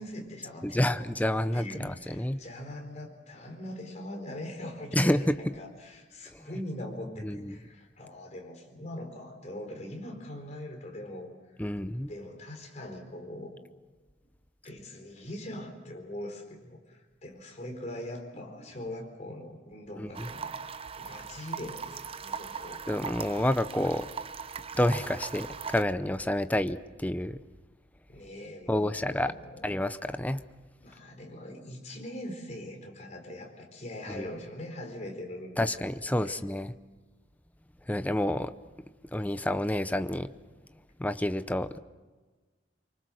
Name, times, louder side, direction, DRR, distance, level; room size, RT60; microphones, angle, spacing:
voice 1, 0.0-1.0 1.5-11.3 12.1-13.5 14.6-20.5 21.0-22.8 28.1-29.6 30.8-35.8 36.2-36.4, left 1 dB, 40° left, 2 dB, 4.4 m, -42 dB
voice 2, 0.6-2.4 4.9-5.4 7.2-7.5 11.6-12.1 20.0-20.3 22.9-24.1 24.8-27.4 28.7-29.3 29.6-30.4 34.1-34.3 35.6-36.7 37.9-38.5 39.1-40.3 41.0-41.8, left 1 dB, 10° left, 11 dB, 0.7 m, -29 dB
sound 1, 20.1-25.8, right 6 dB, 30° right, 0.6 m, -40 dB
26.5 x 24.0 x 6.4 m, 1.3 s
head